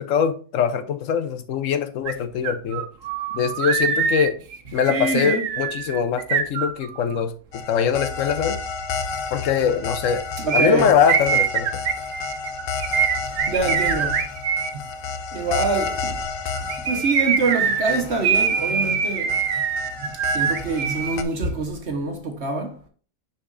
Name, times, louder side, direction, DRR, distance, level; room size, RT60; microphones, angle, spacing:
voice 1, 0.0-2.9 3.3-4.4 4.7-7.3 7.7-8.6 9.3-10.2 10.5-11.7, left 7 dB, 75° left, 1.1 m, -22 dB
sound 1, 2.1-2.2 2.4-7.2 10.5-14.7 16.6-21.2 21.4-21.5, right 7 dB, 85° right, 1.2 m, -24 dB
voice 2, 4.9-5.4 10.4-10.9 13.3-14.3 15.3-16.2 16.8-19.4 20.0-22.8, right 3 dB, 55° right, 1.4 m, -25 dB
sound 2, 7.5-21.2, left 4 dB, 55° left, 0.7 m, -32 dB
6.7 x 5.6 x 2.6 m
omnidirectional pair, 1.3 m